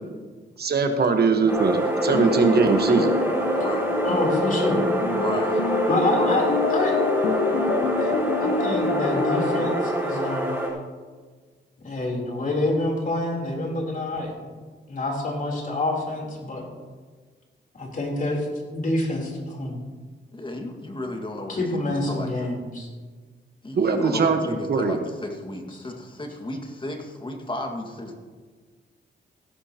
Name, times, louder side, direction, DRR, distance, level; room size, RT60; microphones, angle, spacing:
voice 1, 0.6-3.1 23.8-25.0, right 4 dB, 55° right, 5 dB, 1.2 m, -21 dB
sound 1, 1.5-10.7, right 1 dB, 10° right, 4.4 m, -26 dB
sound 2, 2.1-9.8, left 5 dB, 70° left, 1.0 m, -27 dB
voice 2, 3.5-3.9 5.2-5.6 6.1-6.5 20.3-22.5 23.6-28.1, left 1 dB, 25° left, 3 dB, 1.8 m, -33 dB
voice 3, 4.0-4.8 5.9-6.5 6.7-7.0 8.0-8.1 8.4-10.6 11.8-14.3 14.9-16.6 17.7-19.8 21.5-22.9, left 2 dB, 45° left, 0 dB, 3.5 m, -27 dB
16.5 x 11.5 x 2.9 m, 1.4 s
cardioid pair, 95°, 19 cm